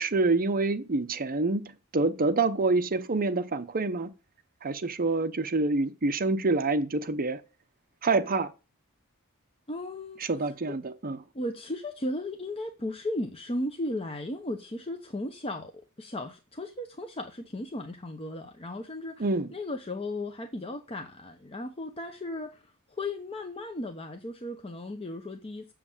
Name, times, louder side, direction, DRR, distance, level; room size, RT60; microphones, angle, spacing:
voice 1, 0.0-1.6 1.9-4.1 4.6-7.4 8.0-8.5 10.2-11.2 19.2-19.5, right 3 dB, 40° right, 0.7 m, -26 dB
voice 2, 9.7-10.2 11.3-15.7 16.0-25.7, left 1 dB, 25° left, 0.9 m, -36 dB
7.6 x 7.2 x 7.1 m
head